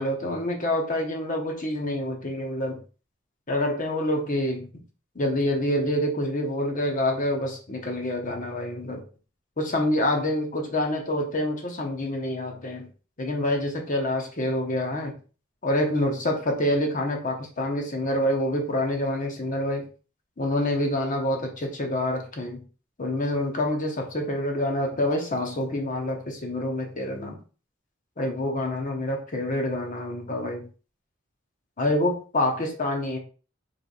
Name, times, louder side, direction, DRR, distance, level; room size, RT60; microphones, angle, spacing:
voice 1, 0.0-2.8 3.5-4.7 5.1-9.0 9.6-12.9 13.2-15.1 15.6-19.8 20.4-22.6 23.0-27.4 28.2-30.7 31.8-33.2, left 1 dB, 40° left, 2 dB, 1.1 m, -27 dB
3.4 x 3.3 x 4.0 m, 0.36 s
head